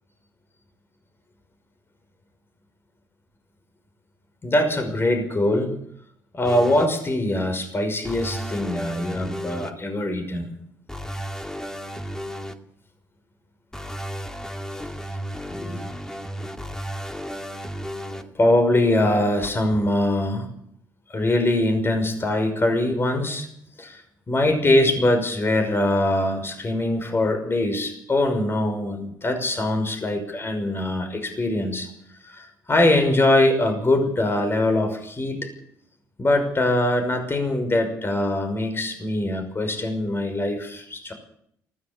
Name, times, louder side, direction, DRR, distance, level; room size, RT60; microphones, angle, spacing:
voice 1, 4.4-5.7 6.3-10.5 15.5-15.9 18.1-20.5 21.1-23.5 23.8-24.0 24.3-31.9 32.2-35.5 36.2-41.1, left 1 dB, 30° left, 6 dB, 5.8 m, -22 dB
sound 1, 6.4-6.9 8.0-9.7 10.9-12.5 13.7-18.2 19.4-19.5, equal, 5° left, 2.5 m, -33 dB
19.0 x 16.0 x 8.4 m, 0.68 s
hypercardioid pair, 55°, 8 cm